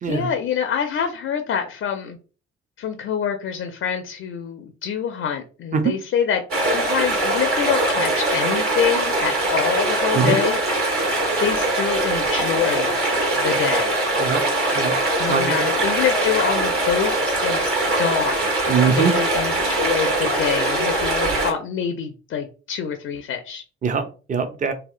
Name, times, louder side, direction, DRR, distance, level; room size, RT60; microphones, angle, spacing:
voice 1, 0.1-2.2 2.8-6.4 6.7-10.6 11.4-13.0 13.3-13.9 15.2-17.7 18.0-18.5 18.9-23.6, left 8 dB, 40° left, 0.4 m, -26 dB
sound 1, 6.5-21.5, right 2 dB, 45° right, 1.1 m, -22 dB
voice 2, 15.3-15.6 18.7-19.1 23.8-24.7, right 6 dB, 25° right, 0.5 m, -22 dB
2.7 x 2.0 x 2.4 m
hypercardioid pair, 45°, 32 cm